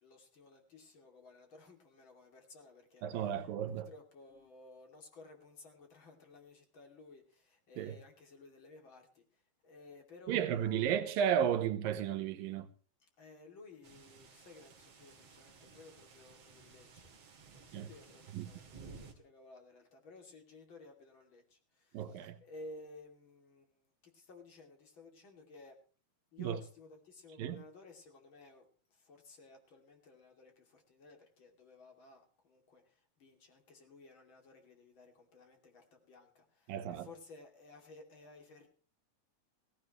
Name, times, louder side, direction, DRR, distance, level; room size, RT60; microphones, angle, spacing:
voice 1, 0.0-9.2 9.6-11.1 13.0-17.1 17.5-25.8 26.3-38.7, left 3 dB, 35° left, 3.0 m, -56 dB
voice 2, 3.0-3.9 7.8-8.0 10.3-12.7 17.7-17.9 18.3-18.5 21.9-22.4 26.4-26.6 27.4-27.6 36.7-37.1, right 9 dB, 75° right, 2.6 m, -33 dB
sound 1, 13.8-19.1, right 5 dB, 45° right, 3.1 m, -56 dB
17.5 x 16.5 x 3.1 m
omnidirectional pair, 4.3 m